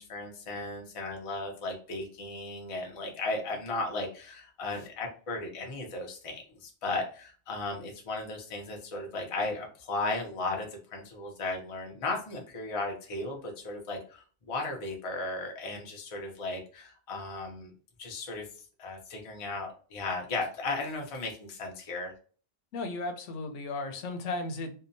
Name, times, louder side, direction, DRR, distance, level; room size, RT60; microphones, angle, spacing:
voice 1, 0.0-17.7 18.0-18.5 18.8-22.1, left 2 dB, 40° left, 1 dB, 0.6 m, -36 dB
voice 2, 22.7-24.7, left 2 dB, 85° left, 6 dB, 0.9 m, -35 dB
2.7 x 2.1 x 2.6 m, 0.40 s
omnidirectional pair, 1.2 m